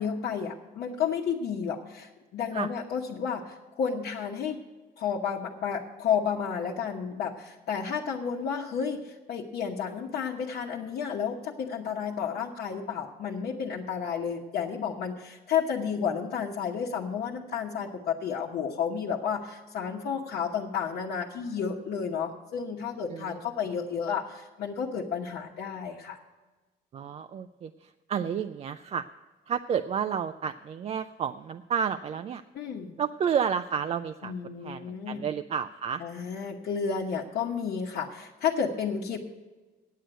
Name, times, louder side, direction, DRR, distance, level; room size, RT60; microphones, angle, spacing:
voice 1, 0.0-4.6 5.0-26.2 32.5-32.9 34.2-35.2 36.0-39.2, left 7 dB, 65° left, -3 dB, 1.1 m, -31 dB
voice 2, 26.9-29.1 29.5-32.4 33.0-34.3 34.6-36.0, right 7 dB, 40° right, 9 dB, 0.4 m, -31 dB
9.3 x 7.7 x 8.9 m, 1.2 s
cardioid pair, 110°, 17 cm